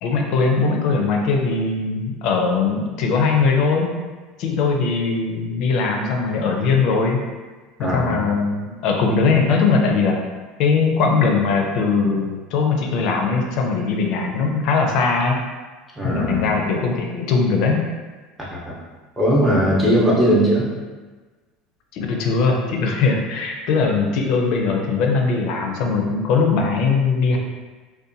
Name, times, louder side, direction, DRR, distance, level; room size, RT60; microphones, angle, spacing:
voice 1, 0.0-3.9 4.4-7.2 7.8-10.2 10.6-15.3 16.0-17.8 21.9-27.4, left 4 dB, 55° left, 1 dB, 0.4 m, -20 dB
voice 2, 7.8-8.3 16.0-16.5 18.5-18.7 19.2-20.6, equal, 5° right, -7 dB, 0.6 m, -19 dB
2.6 x 2.2 x 2.5 m, 1.3 s
cardioid pair, 155°, 0 cm